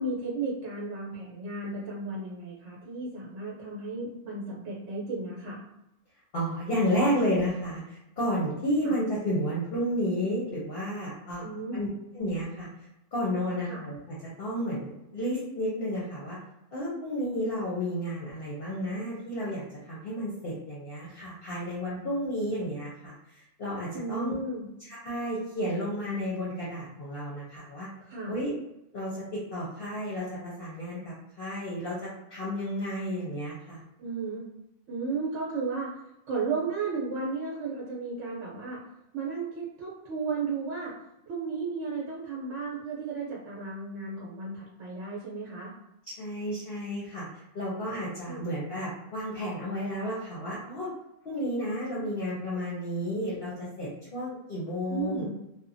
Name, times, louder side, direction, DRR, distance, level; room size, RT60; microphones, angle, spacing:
voice 1, 0.0-5.6 8.8-8.9 11.4-11.8 13.7-13.8 23.9-24.7 28.1-28.3 34.0-34.4 34.9-35.9 36.3-38.8 39.1-40.9 41.3-45.7 48.3-48.4 54.9-55.3, right 4 dB, 75° right, -5 dB, 1.0 m, -34 dB
voice 2, 6.3-11.5 11.7-11.9 12.1-12.7 13.1-14.0 14.4-16.4 16.7-23.1 23.6-24.3 24.8-27.9 28.3-28.5 28.9-33.8 46.1-47.3 47.5-50.9 51.2-55.3, equal, 55° left, -7 dB, 0.8 m, -32 dB
2.8 x 2.1 x 2.5 m, 0.88 s
omnidirectional pair, 1.3 m